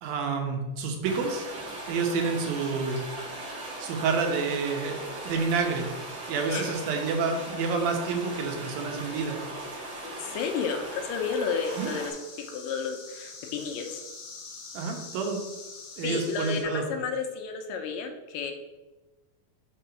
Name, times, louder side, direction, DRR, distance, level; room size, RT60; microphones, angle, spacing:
voice 1, 0.0-1.5 1.9-3.0 3.8-5.0 5.2-5.9 6.3-9.4 11.8-11.9 14.7-15.4 16.0-16.8, right 4 dB, 85° right, 3 dB, 2.8 m, -28 dB
sound 1, 1.0-12.1, right 2 dB, 45° right, 2.0 m, -39 dB
voice 2, 10.0-12.1 12.5-14.0 16.0-18.5, left 5 dB, 80° left, 5 dB, 2.3 m, -32 dB
sound 2, 11.6-16.6, left 4 dB, 55° left, 1.9 m, -45 dB
5.5 x 5.0 x 5.6 m, 1.1 s
omnidirectional pair, 4.0 m